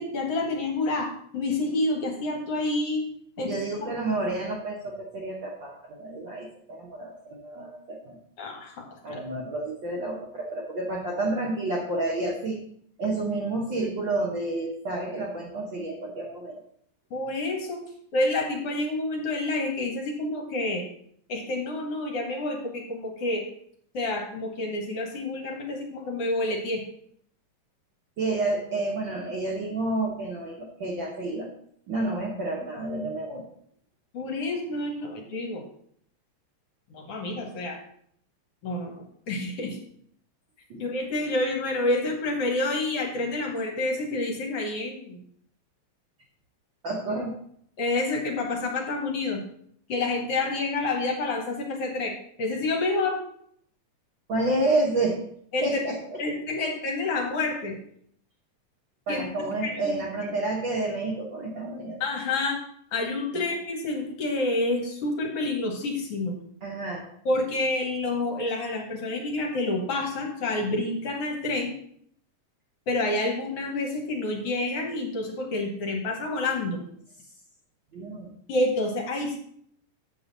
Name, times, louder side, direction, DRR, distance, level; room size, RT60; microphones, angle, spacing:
voice 1, 0.0-3.0 3.4-3.9 8.4-8.8 9.1-9.2 17.1-17.8 18.1-20.8 21.3-23.4 23.9-26.8 34.1-35.6 36.9-37.8 38.6-38.9 39.3-39.8 40.8-45.2 47.8-49.4 49.9-53.2 55.5-55.7 56.2-57.8 59.1-59.2 59.6-59.9 62.0-62.6 62.9-66.4 67.3-71.7 72.9-76.9 78.5-79.4, left 2 dB, 60° left, 1 dB, 2.0 m, -28 dB
voice 2, 3.4-8.2 9.0-12.6 13.0-16.6 28.2-31.5 31.9-33.4 40.7-40.8 46.8-47.3 54.3-55.2 55.6-56.2 59.1-62.0 63.3-63.4 66.6-67.1 77.9-78.3, right 2 dB, 60° right, -2 dB, 1.4 m, -30 dB
7.8 x 7.2 x 4.0 m, 0.66 s
omnidirectional pair, 3.3 m